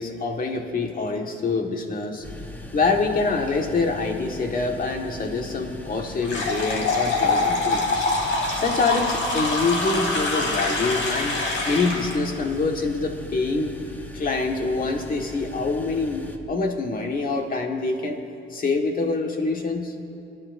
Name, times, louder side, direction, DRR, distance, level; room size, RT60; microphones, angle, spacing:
voice 1, 0.0-2.2 2.7-8.0 8.6-11.4 11.7-13.8 14.1-18.2 18.5-19.9, left 3 dB, 45° left, 2 dB, 1.7 m, -25 dB
sound 1, 2.2-16.4, left 2 dB, 10° left, 1.1 m, -40 dB
sound 2, 6.2-12.1, left 3 dB, 75° left, 3.1 m, -25 dB
29.5 x 11.0 x 2.7 m, 2.6 s
cardioid pair, 90°, 20 cm